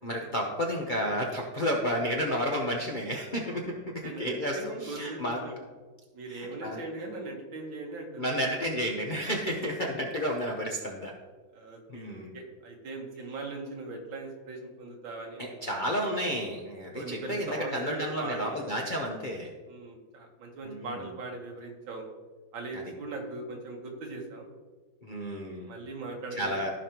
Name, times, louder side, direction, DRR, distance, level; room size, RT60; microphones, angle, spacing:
voice 1, 0.0-5.4 6.3-6.8 8.2-11.1 11.9-12.3 15.4-19.5 20.6-21.0 22.7-22.8 25.0-25.7 26.3-26.7, equal, 45° left, -1 dB, 0.6 m, -31 dB
voice 2, 4.0-5.6 6.1-8.3 11.5-15.8 16.9-18.8 19.7-22.1 22.5-24.5 25.7-26.7, right 2 dB, 85° right, 1 dB, 2.2 m, -40 dB
15.0 x 5.2 x 3.0 m, 1.3 s
omnidirectional pair, 2.1 m